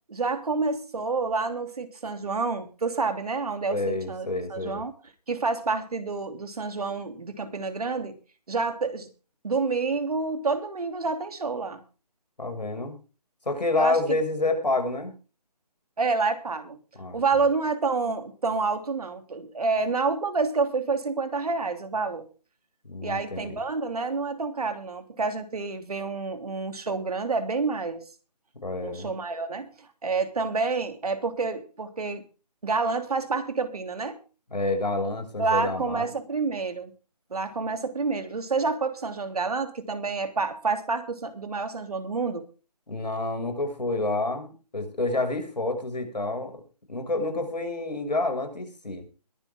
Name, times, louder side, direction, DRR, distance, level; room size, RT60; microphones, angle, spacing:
voice 1, 0.1-4.9 5.3-8.1 8.5-9.1 9.4-11.8 13.8-14.2 16.0-16.8 17.1-22.3 23.0-28.0 28.8-29.7 30.0-32.2 32.6-34.2 35.4-36.9 37.3-42.4, right 4 dB, 65° right, 8 dB, 3.1 m, -28 dB
voice 2, 3.7-4.8 12.4-12.9 13.4-15.1 16.9-17.2 22.8-23.6 28.6-29.1 34.5-36.1 42.9-46.6 46.9-49.1, left 2 dB, 85° left, 6 dB, 6.4 m, -28 dB
21.5 x 10.5 x 3.7 m, 0.35 s
figure-of-eight pair, 155°, 21 cm